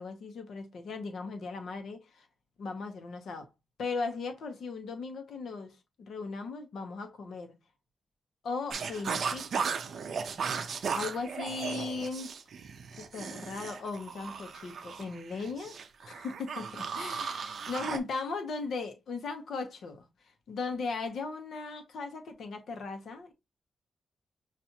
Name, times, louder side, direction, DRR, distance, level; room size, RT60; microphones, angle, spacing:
voice 1, 0.0-2.3 2.6-3.5 3.8-7.6 8.4-9.8 10.9-12.3 13.0-15.8 16.0-20.0 20.5-23.3, left 4 dB, 70° left, 0.8 m, -37 dB
sound 1, 8.7-18.0, right 6 dB, 55° right, 0.5 m, -36 dB
5.8 x 2.5 x 2.7 m
wide cardioid pair, 175°, 0 cm